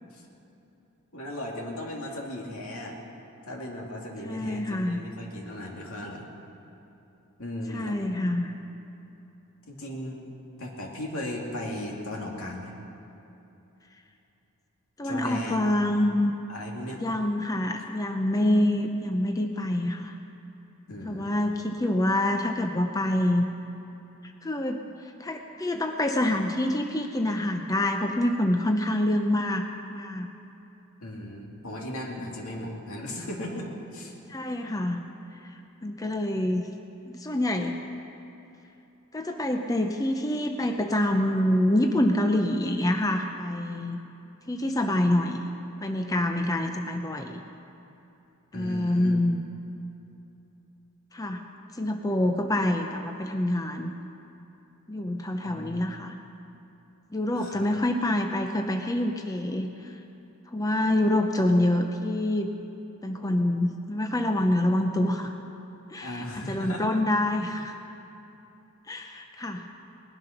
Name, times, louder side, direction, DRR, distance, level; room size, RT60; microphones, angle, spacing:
voice 1, 1.1-3.0 3.5-6.3 7.4-8.0 9.7-10.3 10.6-12.7 15.0-15.8 16.5-17.0 20.9-21.3 31.0-34.1 48.5-49.2 55.4-55.9 57.3-57.7 66.0-67.0, left 1 dB, 75° left, -1 dB, 2.6 m, -36 dB
voice 2, 4.2-5.0 7.7-8.5 15.0-16.3 17.0-20.1 21.1-23.5 24.4-30.3 34.3-35.0 35.8-36.7 37.1-37.8 39.1-44.0 44.5-47.4 48.5-49.4 51.1-51.4 51.7-53.9 54.9-56.2 57.1-59.9 60.5-62.5 63.0-65.3 65.9-67.7 68.9-69.7, left 1 dB, 15° left, 4 dB, 0.6 m, -26 dB
20.0 x 11.5 x 5.9 m, 3.0 s
head